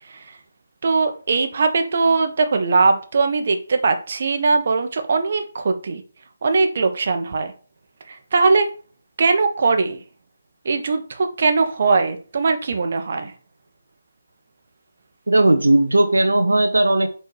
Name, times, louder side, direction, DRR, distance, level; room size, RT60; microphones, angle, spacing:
voice 1, 0.8-6.0 6.4-7.5 8.1-8.7 9.2-10.0 10.6-13.3, right 4 dB, 50° right, 6 dB, 1.2 m, -20 dB
voice 2, 15.3-17.1, right 1 dB, 85° right, 7 dB, 0.8 m, -16 dB
4.7 x 4.5 x 4.7 m, 0.39 s
figure-of-eight pair, 155°, 0 cm